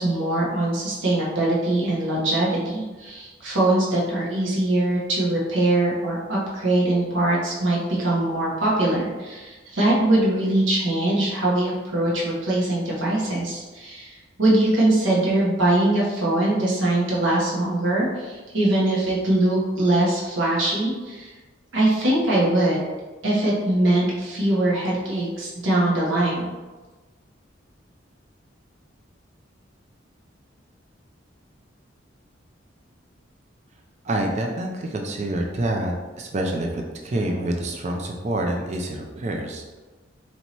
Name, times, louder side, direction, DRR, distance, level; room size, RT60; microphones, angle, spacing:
voice 1, 0.0-21.3 21.7-22.9 23.2-26.5, right 1 dB, 80° right, -5 dB, 0.9 m, -22 dB
voice 2, 34.0-39.8, right 1 dB, 35° right, 1 dB, 0.4 m, -27 dB
4.4 x 2.8 x 2.9 m, 1.3 s
head